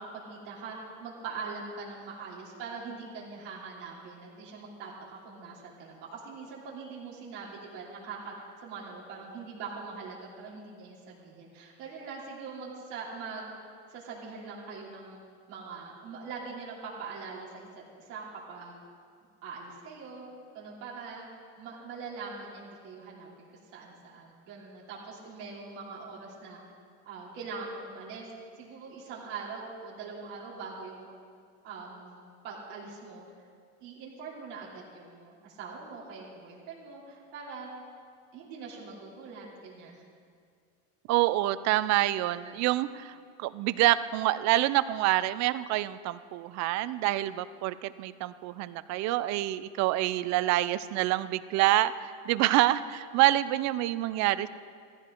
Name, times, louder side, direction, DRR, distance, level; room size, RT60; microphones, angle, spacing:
voice 1, 0.0-13.5 13.9-15.2 15.5-17.7 18.1-18.8 19.4-20.2 20.5-21.3 21.6-26.6 27.1-28.3 28.6-31.1 31.6-33.3 33.8-37.7 38.3-40.0 53.9-54.0, right 4 dB, 85° right, -6 dB, 3.3 m, -42 dB
voice 2, 41.1-43.1 43.4-54.5, right 15 dB, 60° right, 15 dB, 0.6 m, -27 dB
15.0 x 15.0 x 3.8 m, 2.1 s
cardioid pair, 125°, 31 cm